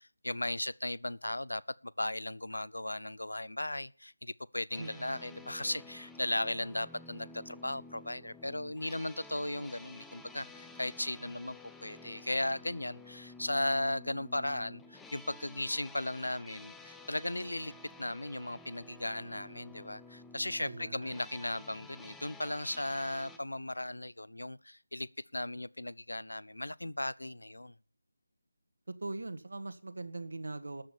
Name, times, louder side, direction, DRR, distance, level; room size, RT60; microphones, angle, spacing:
voice 1, 0.0-11.6 11.8-17.7 18.0-27.7, left 1 dB, 70° left, 0.6 m, -36 dB
sound 1, 4.7-23.4, left 2 dB, 5° left, 0.8 m, -52 dB
voice 2, 4.8-5.2 20.6-21.3 28.9-30.8, right 2 dB, 60° right, 1.5 m, -41 dB
13.0 x 7.7 x 7.1 m
figure-of-eight pair, 155°, 0 cm